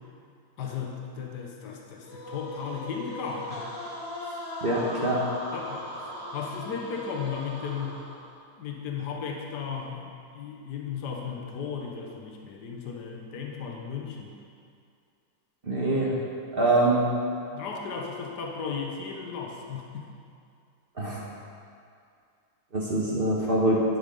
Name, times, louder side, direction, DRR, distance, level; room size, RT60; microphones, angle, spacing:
voice 1, 0.6-3.7 5.5-5.9 6.3-8.0 8.6-14.3 17.5-20.1, left 6 dB, 65° left, 0 dB, 1.7 m, -35 dB
sound 1, 2.0-8.4, left 1 dB, 45° left, 3.6 m, -39 dB
voice 2, 4.6-5.2 15.6-16.2 16.5-17.1 21.0-21.2 22.7-23.8, right 1 dB, 30° right, -5 dB, 1.4 m, -24 dB
10.5 x 8.8 x 5.4 m, 2.4 s
omnidirectional pair, 2.0 m